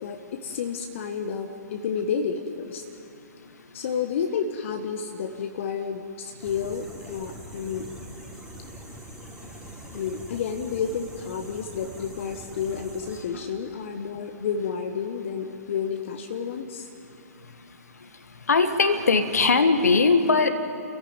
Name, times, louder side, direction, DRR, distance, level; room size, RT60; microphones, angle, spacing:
voice 1, 0.0-2.8 3.7-7.9 9.9-16.9, left 6 dB, 45° left, 5 dB, 1.4 m, -30 dB
sound 1, 6.4-13.2, right 1 dB, 5° right, 3.5 m, -43 dB
voice 2, 18.5-20.5, left 4 dB, 65° left, 8 dB, 1.8 m, -20 dB
29.0 x 15.0 x 9.5 m, 2.8 s
figure-of-eight pair, 120°, 9 cm